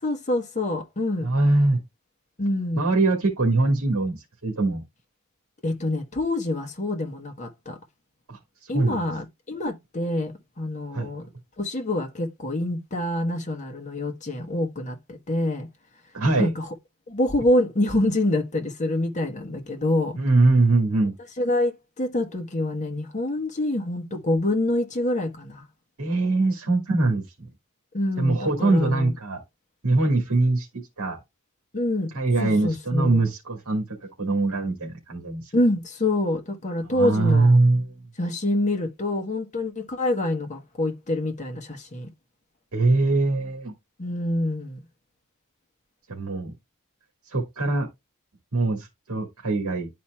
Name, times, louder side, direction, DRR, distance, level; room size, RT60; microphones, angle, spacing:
voice 1, 0.0-1.3 2.4-2.9 5.6-7.8 8.7-11.3 11.6-15.7 16.4-16.7 17.1-20.2 21.4-25.6 27.9-29.1 31.7-32.1 32.4-33.2 35.5-37.6 38.2-42.1 44.0-44.8, left 1 dB, 35° left, 1.2 m, -26 dB
voice 2, 1.2-1.8 2.8-4.8 8.3-9.0 10.9-11.1 16.1-16.5 20.2-21.1 26.0-27.2 28.2-29.4 29.8-30.7 31.0-31.2 32.1-33.8 34.2-35.5 36.9-37.8 42.7-43.7 46.1-46.5 47.3-47.9 48.5-49.9, right 2 dB, 75° right, 1.8 m, -22 dB
11.5 x 4.3 x 2.3 m
head